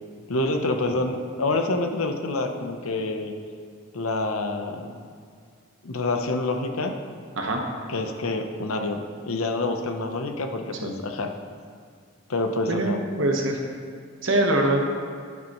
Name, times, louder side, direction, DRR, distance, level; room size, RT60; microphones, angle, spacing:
voice 1, 0.3-3.3 3.9-5.0 5.8-7.0 7.9-11.3 12.3-13.0, left 2 dB, 85° left, 5 dB, 0.8 m, -27 dB
voice 2, 12.7-13.6 14.2-14.9, right 1 dB, 65° right, 1 dB, 1.2 m, -23 dB
11.0 x 9.1 x 3.1 m, 2.2 s
head